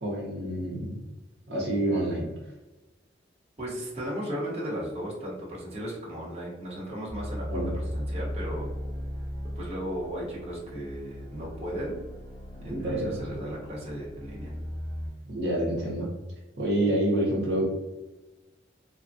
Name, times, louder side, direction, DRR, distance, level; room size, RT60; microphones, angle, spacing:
voice 1, 0.0-1.0 1.5-2.3 7.5-7.7 12.6-13.2 15.2-16.1 16.6-17.7, right 1 dB, 70° right, -4 dB, 0.8 m, -27 dB
voice 2, 3.6-8.7 9.6-12.0 12.6-14.5, equal, 35° right, -6 dB, 1.0 m, -35 dB
sound 1, 7.1-15.1, equal, 20° left, 0.9 m, -37 dB
3.3 x 2.2 x 2.6 m, 1.1 s
head